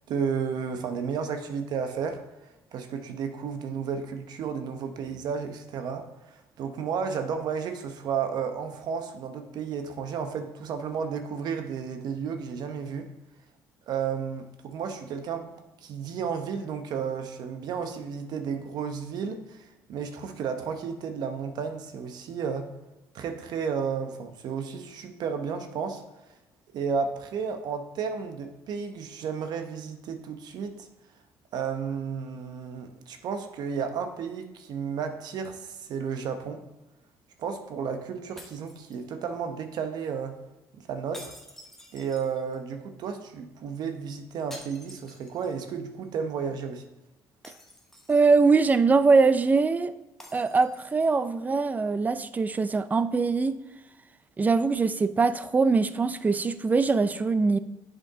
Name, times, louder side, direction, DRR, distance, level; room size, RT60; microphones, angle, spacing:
voice 1, 0.1-2.2 2.7-13.1 13.9-22.7 23.1-26.0 26.7-30.9 31.5-36.6 37.4-40.3 40.8-41.3 41.9-46.8, right 6 dB, 65° right, 0.8 m, -32 dB
sound 1, 38.4-39.4 41.1-42.7 44.5-45.7 46.0-46.1 47.4-48.5 50.2-51.1, left 1 dB, 5° left, 1.0 m, -49 dB
voice 2, 48.1-49.9 50.3-53.6 54.4-57.6, right 4 dB, 20° right, 0.4 m, -22 dB
7.7 x 5.0 x 3.7 m
cardioid pair, 95°, 8 cm